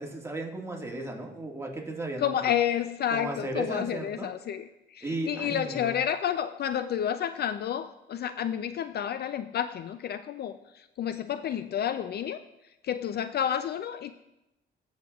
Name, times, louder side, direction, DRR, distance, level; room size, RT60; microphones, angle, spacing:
voice 1, 0.0-2.5 3.1-4.3 5.0-6.0, right 2 dB, 15° right, 0 dB, 1.7 m, -35 dB
voice 2, 2.2-4.6 4.9-12.4 12.8-14.1, left 9 dB, 55° left, 11 dB, 0.4 m, -30 dB
15.0 x 6.5 x 2.4 m, 0.91 s
cardioid pair, 90°, 20 cm